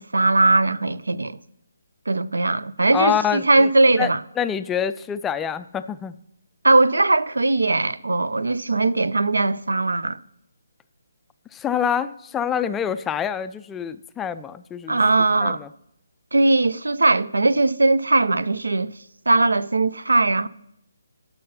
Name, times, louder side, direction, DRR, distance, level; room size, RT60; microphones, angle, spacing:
voice 1, 0.0-1.4 2.1-4.2 6.6-10.2 14.9-15.6 16.3-18.9 19.3-20.5, right 2 dB, 85° right, 0.4 m, -19 dB
voice 2, 2.9-4.1 4.4-6.1 11.5-15.0 15.4-15.7, left 8 dB, 10° left, 0.3 m, -26 dB
10.5 x 5.6 x 5.6 m
figure-of-eight pair, 150°, 0 cm